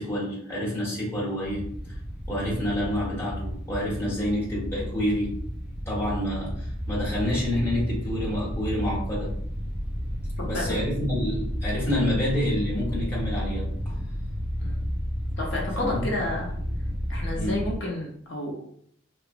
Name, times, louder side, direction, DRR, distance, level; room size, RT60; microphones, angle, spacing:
voice 1, 0.0-1.9 2.3-5.3 5.9-9.3 10.4-14.0 15.8-16.1 17.3-17.6, left 1 dB, 15° left, -7 dB, 1.1 m, -28 dB
sound 1, 1.4-17.7, equal, 5° right, 0.4 m, -32 dB
voice 2, 15.4-16.5 17.1-18.7, left 2 dB, 65° left, -2 dB, 0.6 m, -31 dB
2.9 x 2.1 x 2.5 m, 0.63 s
head